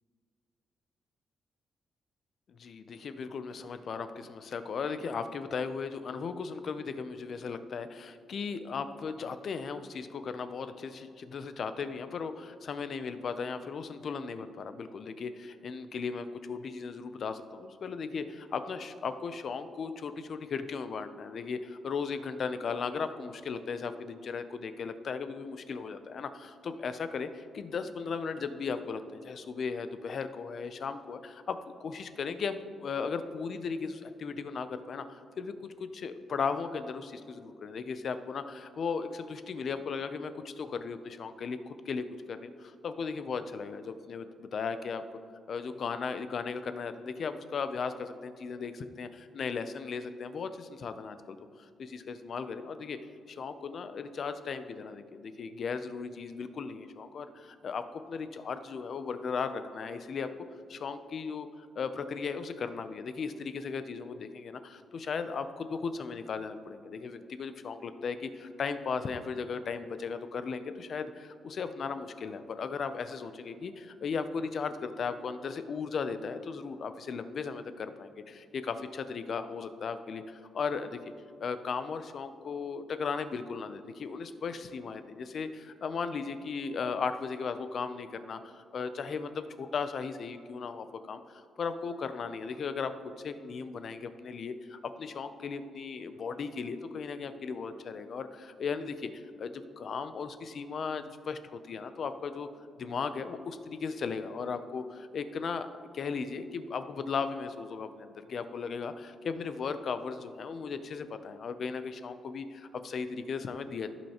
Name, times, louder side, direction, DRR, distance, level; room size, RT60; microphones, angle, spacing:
voice 1, 2.5-45.0 45.5-53.0 53.3-57.8 58.1-60.3 60.7-81.0 81.4-92.9 93.2-102.5 102.8-105.7 105.9-113.9, left 5 dB, 45° left, 10 dB, 0.4 m, -36 dB
14.5 x 5.5 x 2.9 m, 2.3 s
cardioid pair, 160°, 0 cm